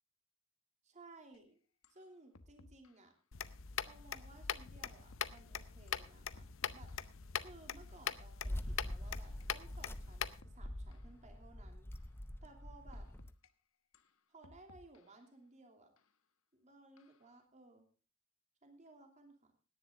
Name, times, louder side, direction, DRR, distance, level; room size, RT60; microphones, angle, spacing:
voice 1, 0.8-1.6 1.9-3.1 3.9-6.4 6.7-6.9 7.3-11.9 12.4-13.1 14.3-15.9 16.5-17.9 18.6-19.5, right 2 dB, 35° right, 4 dB, 2.8 m, -59 dB
sound 1, 1.3-1.4 1.8-2.0 2.3-3.1 3.9-4.1 4.9-5.4 5.9-7.2 7.9-8.1 8.9-9.5 9.9-10.1 10.4-11.2 11.9-12.2 12.9-13.5 13.9-15.2 16.0-16.1 17.0-17.3, left 2 dB, 85° left, 1.2 m, -63 dB
sound 2, 3.3-10.4, left 8 dB, 70° left, 0.7 m, -43 dB
sound 3, 8.4-13.3, left 1 dB, 10° left, 0.6 m, -45 dB
17.5 x 10.5 x 3.7 m, 0.35 s
head